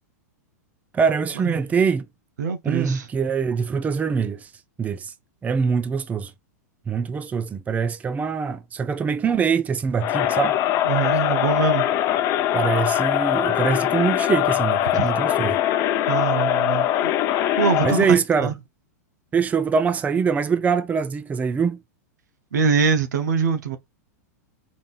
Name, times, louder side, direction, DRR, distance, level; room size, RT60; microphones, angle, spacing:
voice 1, 0.9-2.1 2.6-4.5 4.8-5.1 5.4-6.3 6.9-10.5 12.5-15.6 17.8-18.5 19.3-21.8, right 6 dB, 15° right, 0.5 m, -23 dB
voice 2, 2.4-3.1 10.8-11.9 14.9-15.1 16.1-17.1 17.6-18.5 22.5-23.8, right 6 dB, 80° right, 0.8 m, -23 dB
Crowd, 10.0-18.1, left 12 dB, 40° left, 0.6 m, -22 dB
4.1 x 3.6 x 2.4 m
hypercardioid pair, 115°, 9 cm